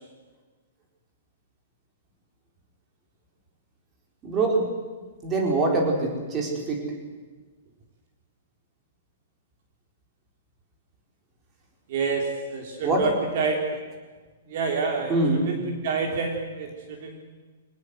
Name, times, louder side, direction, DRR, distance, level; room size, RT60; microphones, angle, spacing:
voice 1, 4.2-4.7 5.2-6.8 12.8-13.1 15.1-15.4, right 2 dB, 15° right, 1 dB, 4.5 m, -24 dB
voice 2, 11.9-13.8 14.5-15.1 15.5-17.2, right 4 dB, 40° right, 3 dB, 3.5 m, -28 dB
25.5 x 19.0 x 7.9 m, 1.4 s
hypercardioid pair, 170°, 0 cm